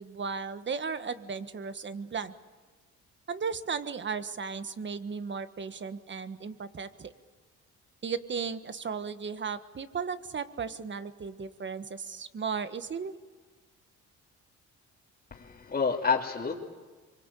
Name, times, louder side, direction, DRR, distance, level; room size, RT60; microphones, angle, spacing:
voice 1, 0.0-2.3 3.3-7.1 8.0-13.1, right 5 dB, 40° right, 11 dB, 1.5 m, -35 dB
voice 2, 15.3-16.5, left 5 dB, 30° left, -5 dB, 2.9 m, -28 dB
26.0 x 24.0 x 8.4 m, 1.4 s
cardioid pair, 90°, 30 cm